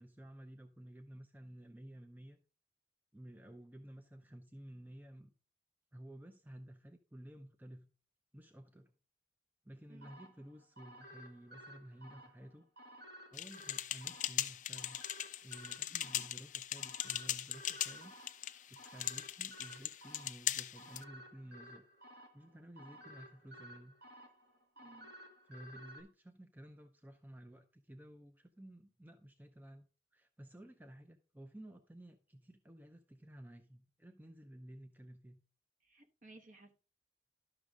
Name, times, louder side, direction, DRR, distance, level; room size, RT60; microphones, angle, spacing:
voice 1, 0.0-2.4 3.1-5.3 5.9-7.9 8.3-8.9 9.6-12.7 13.3-15.0 15.4-18.1 18.7-21.8 22.3-23.9 25.1-25.2 25.5-29.8 30.1-35.4, right 1 dB, 10° right, 0.6 m, -54 dB
sound 1, 10.0-26.0, equal, 65° right, 2.2 m, -56 dB
sound 2, 13.3-21.0, left 12 dB, 45° left, 0.5 m, -40 dB
voice 2, 24.8-25.1 35.8-36.8, right 2 dB, 45° right, 1.2 m, -59 dB
12.0 x 6.2 x 3.6 m
head